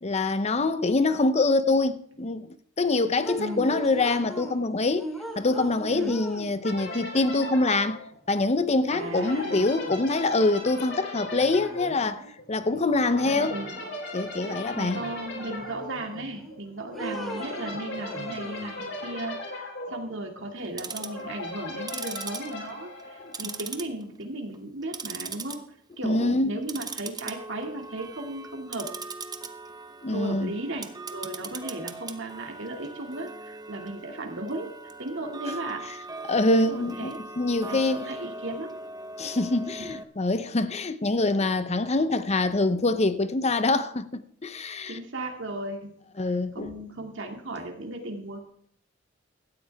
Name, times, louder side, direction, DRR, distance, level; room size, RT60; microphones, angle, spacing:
voice 1, 0.0-2.5 2.8-5.1 5.4-8.0 8.3-13.6 14.1-15.0 23.2-23.3 26.0-26.6 30.0-30.5 36.2-38.0 39.2-45.0 46.2-46.8, left 2 dB, 35° left, 0.8 m, -25 dB
sound 1, 3.2-4.6 5.0-6.9 8.3-8.4 8.9-10.0 11.3-12.3 12.6-13.9 14.4-15.2 15.6-16.5 16.9-18.7, right 1 dB, ahead, 2.7 m, -41 dB
voice 2, 3.4-3.8 5.9-6.1 8.9-9.6 13.2-13.8 14.4-25.6 26.0-28.9 30.1-35.8 36.5-37.2 37.6-38.8 39.8-39.9 44.9-45.9 46.5-48.5, right 2 dB, 65° right, 2.4 m, -36 dB
sound 2, 6.6-23.8, left 1 dB, 60° left, 3.9 m, -38 dB
Tick-tock, 20.6-21.2 21.8-23.1 23.3-24.2 24.5-25.6 25.9-26.2 26.6-40.0, right 3 dB, 20° right, 0.9 m, -40 dB
16.5 x 13.0 x 3.6 m
head